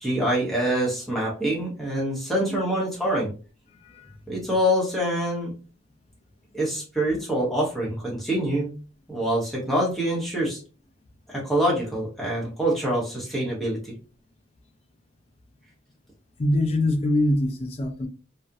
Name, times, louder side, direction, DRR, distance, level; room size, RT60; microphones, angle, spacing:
voice 1, 0.0-3.3 4.3-5.5 6.5-8.7 9.1-10.6 11.3-13.9, equal, ahead, 0.8 m, -25 dB
voice 2, 3.8-4.1 16.4-18.1, left 1 dB, 30° left, 0.3 m, -24 dB
2.3 x 2.0 x 2.6 m
head